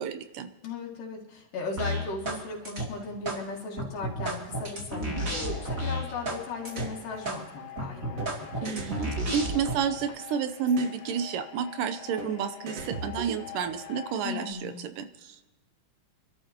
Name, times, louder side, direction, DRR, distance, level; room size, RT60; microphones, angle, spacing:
voice 1, 0.0-0.5 8.6-15.5, right 7 dB, 80° right, 9 dB, 2.4 m, -31 dB
voice 2, 0.6-8.5 14.2-14.9, left 3 dB, 75° left, -2 dB, 3.6 m, -37 dB
sound 1, 1.8-2.4 2.6-3.4 3.8-6.4 6.6-6.8 7.2-7.4 7.8-9.7, right 1 dB, 25° right, 2.7 m, -32 dB
sound 2, 5.1-14.5, left 10 dB, 60° left, 1.9 m, -45 dB
sound 3, 6.7-7.0 8.2-8.3 8.7-10.1 10.7-11.0 12.2-12.3 12.7-13.8, right 3 dB, 55° right, 2.1 m, -38 dB
27.5 x 12.5 x 2.9 m, 1.2 s
omnidirectional pair, 3.9 m